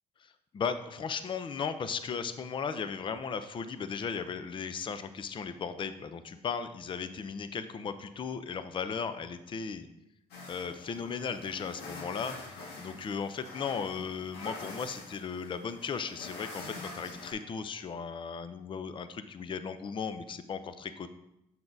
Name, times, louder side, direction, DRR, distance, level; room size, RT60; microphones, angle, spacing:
voice 1, 0.5-9.9 10.5-21.1, left 6 dB, 30° left, 11 dB, 0.5 m, -36 dB
sound 1, 10.3-17.3, left 3 dB, 85° left, 1.5 m, -45 dB
7.2 x 5.8 x 2.6 m, 0.86 s
cardioid pair, 110°, 17 cm